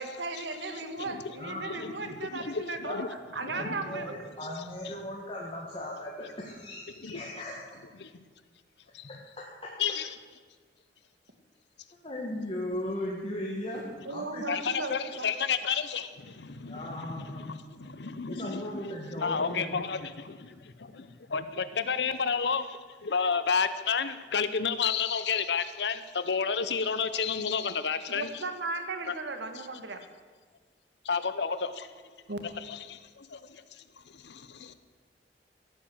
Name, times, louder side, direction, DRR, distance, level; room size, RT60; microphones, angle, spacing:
voice 1, 0.0-3.0 3.3-4.2 14.1-15.3 28.1-30.0 32.3-32.4, right 3 dB, 85° right, 7 dB, 1.7 m, -36 dB
voice 2, 1.6-3.1 3.4-3.8 7.0-7.2 8.9-9.1 9.8-10.2 14.5-28.4 29.1-29.2 31.0-31.9 32.7-34.7, left 6 dB, 70° left, 13 dB, 0.7 m, -32 dB
voice 3, 3.5-7.6 9.4-9.8 12.0-14.4 16.7-19.8, left 1 dB, 30° left, -3 dB, 1.8 m, -37 dB
16.0 x 9.0 x 7.8 m, 1.5 s
head